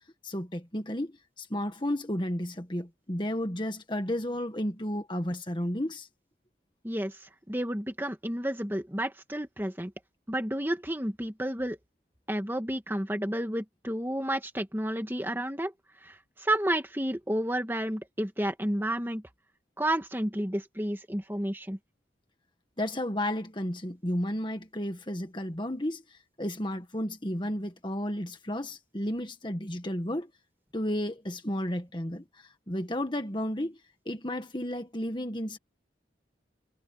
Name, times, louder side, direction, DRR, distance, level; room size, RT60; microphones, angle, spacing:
voice 1, 0.2-6.1 22.8-30.3 30.7-33.8 34.1-35.6, left 1 dB, 25° left, 1.8 m, -33 dB
voice 2, 6.8-7.2 7.5-9.9 10.3-11.8 12.3-15.7 16.0-19.2 19.8-21.8, right 1 dB, 10° right, 1.9 m, -31 dB
head